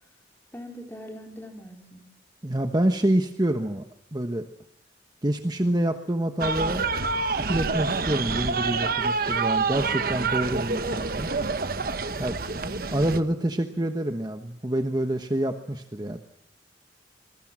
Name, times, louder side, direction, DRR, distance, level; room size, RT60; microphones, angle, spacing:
voice 1, 0.5-2.1 12.4-13.0, equal, 10° left, 2 dB, 4.0 m, -43 dB
voice 2, 2.4-3.9 4.1-4.5 5.2-6.8 7.2-11.3 12.2-12.4 12.9-16.2, right 1 dB, 20° right, 6 dB, 1.2 m, -27 dB
sound 1, 6.4-13.2, right 4 dB, 55° right, 1.2 m, -27 dB
26.0 x 21.0 x 7.6 m, 0.82 s
head